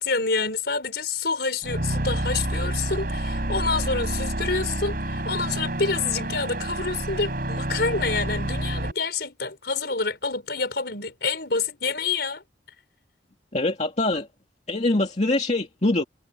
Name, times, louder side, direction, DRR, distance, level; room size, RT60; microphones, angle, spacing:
voice 1, 0.0-12.4, left 4 dB, 65° left, 5.8 m, -27 dB
sound 1, 1.6-8.9, right 1 dB, 55° right, 4.5 m, -28 dB
voice 2, 13.5-14.3 14.7-16.0, left 2 dB, 40° left, 2.3 m, -23 dB
head